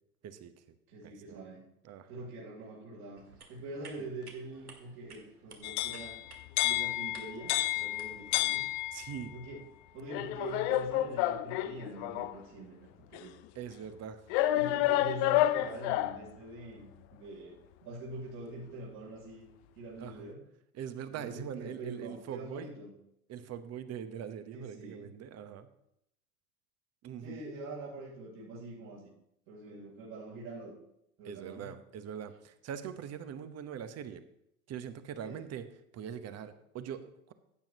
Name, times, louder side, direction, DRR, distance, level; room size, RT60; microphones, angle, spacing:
voice 1, 0.2-0.5 1.0-1.4 1.8-2.3 8.9-9.3 13.5-14.2 20.0-20.3 20.7-22.7 23.3-25.7 27.0-27.4 31.2-34.2 34.7-35.7 35.9-37.3, right 8 dB, 35° right, 11 dB, 1.1 m, -42 dB
voice 2, 0.9-1.7 2.1-6.2 6.6-8.6 9.3-9.6 9.9-13.4 14.5-17.6 17.8-19.5 19.8-20.4 21.1-22.9 24.5-25.1 27.2-29.1 29.5-30.7 31.2-31.7 35.2-35.4, right 2 dB, 55° right, -6 dB, 3.6 m, -44 dB
sound 1, 3.1-8.3, right 4 dB, 85° right, 2.0 m, -56 dB
sound 2, 5.6-9.3 10.1-12.4 13.1-13.2 14.3-16.3, left 15 dB, 50° left, 0.6 m, -30 dB
15.5 x 8.9 x 3.0 m, 0.78 s
figure-of-eight pair, 75°, 45 cm